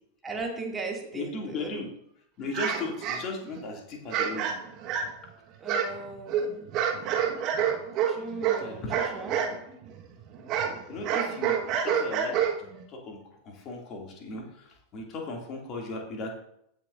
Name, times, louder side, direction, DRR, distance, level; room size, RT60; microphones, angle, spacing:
voice 1, 0.2-1.7 5.6-6.6 8.1-9.4, right 3 dB, 15° right, -1 dB, 2.3 m, -37 dB
voice 2, 1.1-1.9 2.4-4.5 8.6-9.0 10.9-12.4 12.9-16.4, left 2 dB, 35° left, 0 dB, 2.5 m, -37 dB
sound 1, 2.5-3.6 4.1-5.3 5.6-9.6 9.8-12.8, right 8 dB, 35° right, 1.4 m, -28 dB
16.0 x 6.7 x 2.6 m, 0.74 s
figure-of-eight pair, 90°, 0 cm